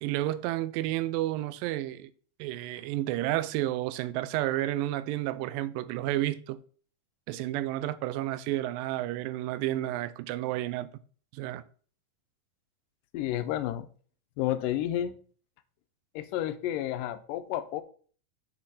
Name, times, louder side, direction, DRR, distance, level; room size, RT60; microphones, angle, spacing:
voice 1, 0.0-2.1 2.4-6.6 7.3-10.9 11.3-11.6, right 15 dB, 85° right, 2.2 m, -31 dB
voice 2, 13.1-13.9 14.4-15.2 16.2-17.8, left 12 dB, 80° left, 2.2 m, -31 dB
6.3 x 5.9 x 4.1 m
omnidirectional pair, 4.0 m